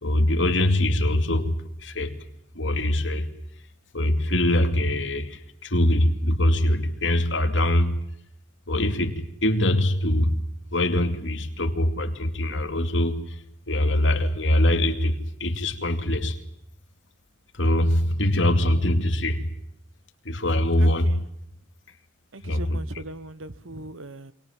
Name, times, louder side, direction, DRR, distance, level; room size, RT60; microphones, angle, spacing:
voice 1, 0.0-2.1 2.5-3.3 3.9-8.0 8.7-10.4 10.7-13.4 13.7-16.4 17.5-19.5 20.2-21.2 22.4-22.8, left 1 dB, 70° left, 2.6 m, -23 dB
voice 2, 20.8-21.2 22.3-24.3, right 2 dB, 85° right, 1.3 m, -39 dB
28.0 x 24.0 x 7.5 m
head